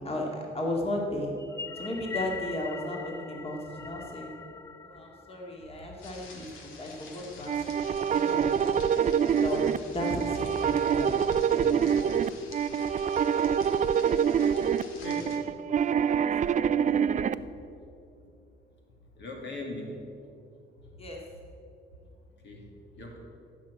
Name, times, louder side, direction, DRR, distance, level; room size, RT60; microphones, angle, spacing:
voice 1, 0.0-1.3 1.8-4.3 4.8-8.7 9.4-11.1 11.4-11.8 15.1-15.2 16.1-16.2 16.5-17.0 21.0-21.2, left 1 dB, 30° left, -1 dB, 2.2 m, -35 dB
sound 1, 1.4-5.9, left 5 dB, 15° left, 0.5 m, -42 dB
sound 2, 6.0-15.4, left 4 dB, 85° left, 1.9 m, -48 dB
sound 3, 7.5-17.3, right 8 dB, 40° right, 0.4 m, -26 dB
voice 2, 15.0-15.5 19.2-20.1 20.8-20.9 22.4-22.7 22.9-23.2, left 2 dB, 65° left, 0 dB, 2.5 m, -40 dB
14.5 x 6.0 x 8.2 m, 2.6 s
cardioid pair, 90°, 20 cm